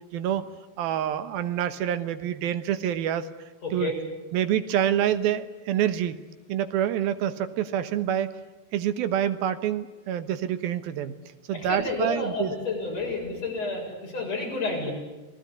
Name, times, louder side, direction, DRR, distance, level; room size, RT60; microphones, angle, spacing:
voice 1, 0.1-0.4 0.8-3.3 3.7-3.9 4.3-6.2 6.5-8.4 8.7-11.1 11.5-12.5, right 10 dB, 70° right, 12 dB, 2.8 m, -27 dB
voice 2, 3.6-4.0 11.5-14.9, left 3 dB, 40° left, 0 dB, 8.3 m, -30 dB
29.0 x 19.5 x 9.7 m, 1.1 s
omnidirectional pair, 4.7 m